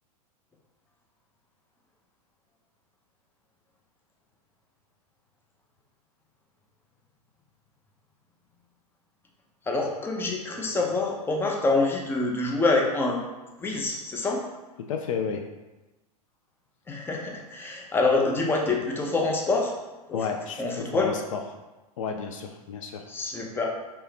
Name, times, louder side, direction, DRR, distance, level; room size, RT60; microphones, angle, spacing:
voice 1, 9.7-13.2 13.6-14.4 16.9-19.7 20.1-20.2 20.6-21.1 23.1-23.7, left 3 dB, 10° left, 0 dB, 0.6 m, -26 dB
voice 2, 14.9-15.4 20.1-21.4 22.0-23.0, left 6 dB, 55° left, 4 dB, 0.5 m, -31 dB
4.5 x 2.9 x 3.4 m, 1.1 s
figure-of-eight pair, 95°, 20 cm